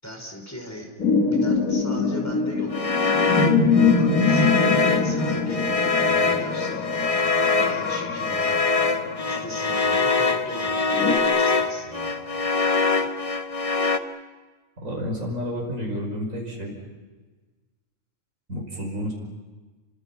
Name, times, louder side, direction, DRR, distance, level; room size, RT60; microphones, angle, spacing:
voice 1, 0.0-0.9 1.2-2.7 3.6-7.1 7.4-8.6 9.3-12.2, equal, 10° left, 2 dB, 5.4 m, -38 dB
sound 1, 1.0-11.2, left 4 dB, 90° left, 2.6 m, -24 dB
sound 2, 2.7-14.0, left 4 dB, 25° left, 1.2 m, -24 dB
Guitar, 4.3-13.1, left 1 dB, 15° right, 2.4 m, -44 dB
voice 2, 14.8-16.8 18.5-19.1, equal, 70° right, -1 dB, 5.8 m, -30 dB
29.5 x 25.5 x 5.9 m, 1.3 s
omnidirectional pair, 1.5 m